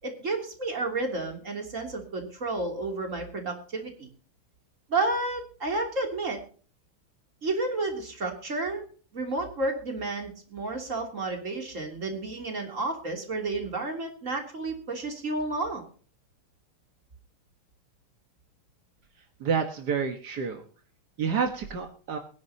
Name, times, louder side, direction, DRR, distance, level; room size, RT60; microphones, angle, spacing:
voice 1, 0.0-4.1 4.9-6.4 7.4-8.8 9.1-15.9, right 2 dB, 25° right, 3 dB, 3.1 m, -31 dB
voice 2, 19.4-20.6 21.2-22.2, right 6 dB, 50° right, 5 dB, 1.2 m, -29 dB
23.0 x 10.5 x 2.9 m, 0.41 s
omnidirectional pair, 3.7 m